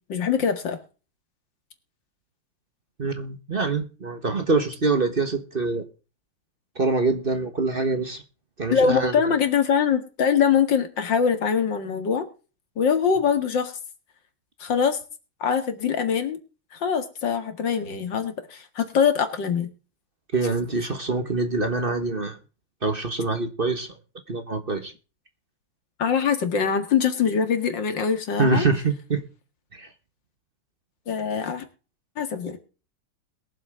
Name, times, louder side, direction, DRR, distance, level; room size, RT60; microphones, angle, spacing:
voice 1, 0.1-0.8 8.7-12.3 12.8-13.8 14.6-15.0 15.4-16.4 16.7-19.7 26.0-28.7 31.1-31.6 32.2-32.6, left 7 dB, 80° left, 2.6 m, -23 dB
voice 2, 3.0-5.8 6.7-8.2 8.6-9.3 20.3-22.4 22.8-23.9 24.3-24.9 28.4-29.2 29.7-29.9, right 3 dB, 35° right, 1.4 m, -25 dB
22.0 x 7.7 x 3.6 m
omnidirectional pair, 2.0 m